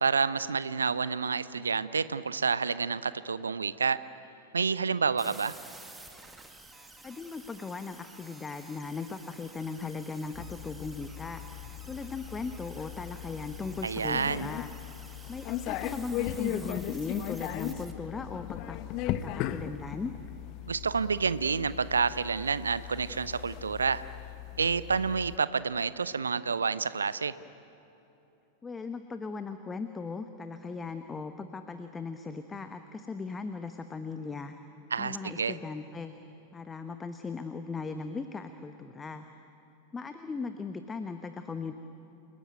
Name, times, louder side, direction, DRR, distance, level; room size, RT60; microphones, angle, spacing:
voice 1, 0.0-4.0 4.5-5.6 13.8-14.5 20.7-24.0 24.6-27.3 34.9-35.6, right 5 dB, 75° right, 17 dB, 0.7 m, -29 dB
sound 1, 5.2-17.9, right 2 dB, 10° right, 1.9 m, -51 dB
voice 2, 7.0-11.4 11.8-14.7 15.3-20.1 28.6-34.5 35.0-36.1 36.5-39.2 39.9-41.7, left 4 dB, 15° left, 8 dB, 1.0 m, -38 dB
sound 2, 10.3-25.4, left 13 dB, 40° left, 0.9 m, -38 dB
29.5 x 18.5 x 9.1 m, 3.0 s
figure-of-eight pair, 90°, 0 cm